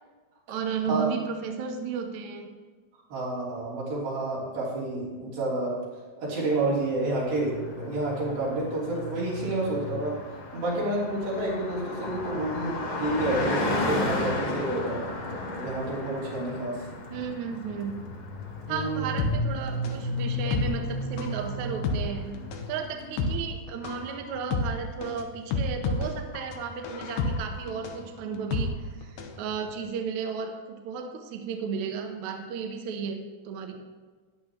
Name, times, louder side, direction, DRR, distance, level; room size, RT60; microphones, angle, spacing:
voice 1, 0.5-2.5 17.1-17.9 18.7-22.4 22.7-33.7, right 6 dB, 70° right, 4 dB, 2.0 m, -34 dB
voice 2, 3.1-5.8 6.2-10.2 10.5-15.0 15.6-16.8 18.7-19.1, right 2 dB, 90° right, -7 dB, 5.2 m, -29 dB
Car passing by, 6.9-23.0, left 2 dB, 50° left, 2.6 m, -33 dB
sound 1, 19.2-29.4 29.7-29.8, left 3 dB, 90° left, 2.8 m, -31 dB
14.0 x 10.0 x 3.0 m, 1.4 s
omnidirectional pair, 4.0 m